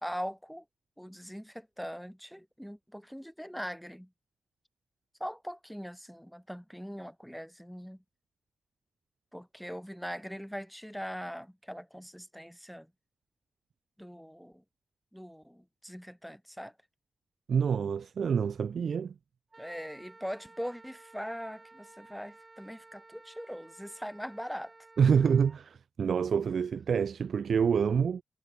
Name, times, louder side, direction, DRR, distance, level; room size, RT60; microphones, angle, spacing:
voice 1, 0.0-0.6 1.0-4.1 5.2-8.0 9.3-12.9 14.0-14.6 15.1-16.7 19.6-24.7, equal, ahead, 1.9 m, -41 dB
voice 2, 17.5-19.1 25.0-28.2, right 6 dB, 75° right, 0.7 m, -27 dB
Wind instrument woodwind instrument, 19.5-25.6, right 3 dB, 35° right, 2.5 m, -55 dB
supercardioid pair, 40°, 0 cm